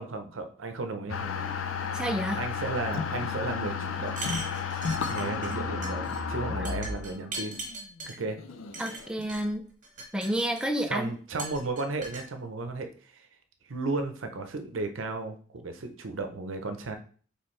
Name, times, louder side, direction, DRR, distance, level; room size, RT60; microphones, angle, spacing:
voice 1, 0.0-1.5 2.3-4.1 5.1-7.6 8.0-8.4 10.9-13.3 13.7-17.0, right 3 dB, 80° right, 6 dB, 0.7 m, -34 dB
sound 1, 1.1-9.2, left 6 dB, 90° left, 0.5 m, -33 dB
voice 2, 1.9-2.4 6.6-6.7 8.8-9.6 10.1-11.1, right 1 dB, 5° right, 3 dB, 0.4 m, -30 dB
sound 2, 4.1-5.6 5.8-6.2 6.6-8.2 8.7-9.4 9.8-10.9 11.4-12.3, right 2 dB, 40° right, 1.1 m, -39 dB
4.3 x 3.3 x 3.2 m, 0.43 s
head